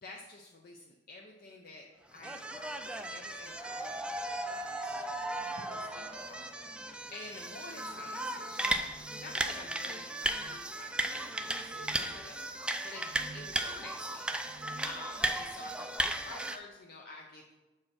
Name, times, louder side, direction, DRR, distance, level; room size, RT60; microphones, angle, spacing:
voice 1, 0.0-1.9 2.1-12.5 12.8-14.3 14.8-17.5, left 2 dB, 55° left, 1 dB, 0.6 m, -50 dB
sound 1, 2.2-16.6, right 1 dB, 5° right, 0.3 m, -36 dB
Wind instrument woodwind instrument, 3.1-6.5, right 2 dB, 35° left, 1.3 m, -56 dB
sound 2, 8.6-9.6 10.3-10.6 11.6-12.1 12.9-13.7 14.3-15.0, right 3 dB, 65° right, 0.8 m, -52 dB
7.4 x 4.8 x 4.3 m, 1.2 s
head